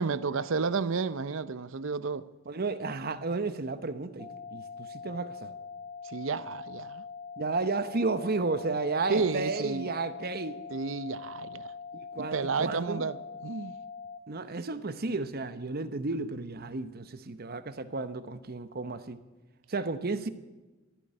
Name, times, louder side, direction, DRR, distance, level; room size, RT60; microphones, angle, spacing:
voice 1, 0.0-2.3 6.0-7.0 9.1-9.9 10.7-11.7 12.2-13.7, right 4 dB, 70° right, 0.6 m, -31 dB
voice 2, 2.5-5.5 7.4-10.6 11.9-13.1 14.3-19.2 19.7-20.3, right 3 dB, 50° right, 0.9 m, -33 dB
sound 1, 4.2-14.2, left 5 dB, 25° left, 1.0 m, -43 dB
13.5 x 11.0 x 9.8 m
head